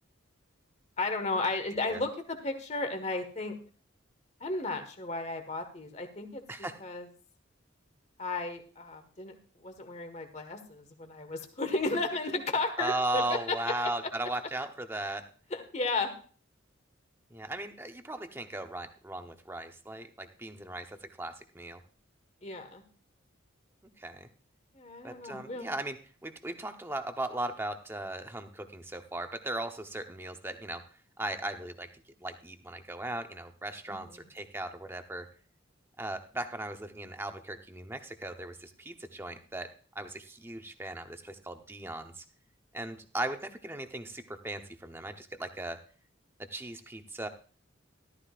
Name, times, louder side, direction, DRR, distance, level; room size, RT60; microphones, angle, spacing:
voice 1, 1.0-3.5 4.4-6.4 6.8-7.1 8.2-9.3 9.6-13.7 15.5-16.1 22.4-22.8 24.7-25.7 33.9-34.0, left 3 dB, 35° left, 6 dB, 1.5 m, -34 dB
voice 2, 12.8-15.2 17.3-21.8 24.0-24.3 25.0-26.0 26.2-30.8 31.2-31.9 32.2-35.3 36.0-39.7 39.9-42.2 42.7-45.8 46.4-47.3, right 2 dB, 10° right, 6 dB, 0.9 m, -37 dB
13.5 x 13.5 x 2.5 m, 0.40 s
head